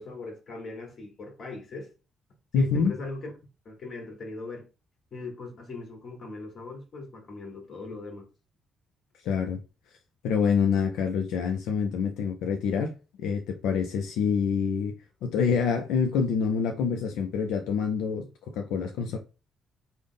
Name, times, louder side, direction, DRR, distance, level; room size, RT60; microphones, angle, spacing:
voice 1, 0.0-1.9 2.5-3.3 3.6-4.7 5.1-8.3, left 3 dB, 50° left, 1.4 m, -39 dB
voice 2, 2.5-2.9 9.2-9.6 10.2-12.9 13.2-19.2, left 6 dB, 90° left, 0.4 m, -26 dB
3.4 x 2.1 x 3.8 m
cardioid pair, 90°, 0 cm